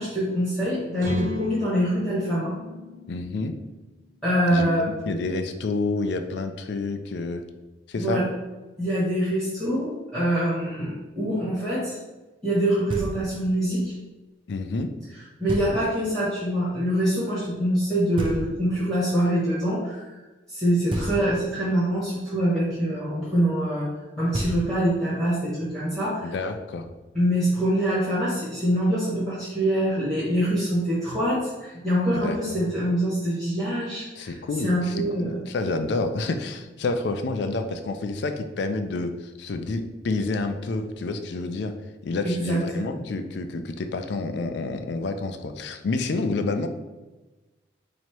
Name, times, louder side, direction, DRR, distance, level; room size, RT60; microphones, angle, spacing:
voice 1, 0.0-2.5 4.2-4.9 8.0-8.2 8.8-12.0 12.4-13.9 15.4-20.1 20.5-23.9 24.2-26.3 27.1-35.4 42.2-43.0, equal, ahead, -11 dB, 1.1 m, -25 dB
sound 1, 1.0-4.8, left 3 dB, 80° right, 1.3 m, -36 dB
voice 2, 3.1-3.5 4.5-7.4 7.9-8.2 14.5-14.9 26.2-26.9 32.1-32.7 34.2-41.7 42.0-46.7, left 3 dB, 60° left, 7 dB, 0.4 m, -29 dB
Knock, 12.9-13.6 15.5-16.1 18.2-19.0 20.9-21.7 24.0-24.1 24.3-25.1, right 1 dB, 25° right, 0.4 m, -32 dB
3.0 x 2.7 x 4.4 m, 1.2 s
head